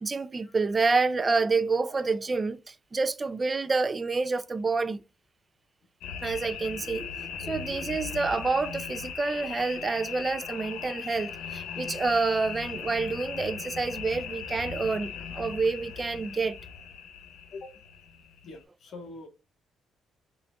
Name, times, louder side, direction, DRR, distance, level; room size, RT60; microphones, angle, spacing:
voice 1, 0.0-5.0 6.2-16.6, right 4 dB, 30° right, 0.4 m, -28 dB
sound 1, 6.0-18.6, left 7 dB, 85° left, 0.9 m, -38 dB
voice 2, 17.5-17.8 18.4-19.3, left 3 dB, 65° left, 1.1 m, -44 dB
5.8 x 2.5 x 2.3 m
cardioid pair, 90°, 0 cm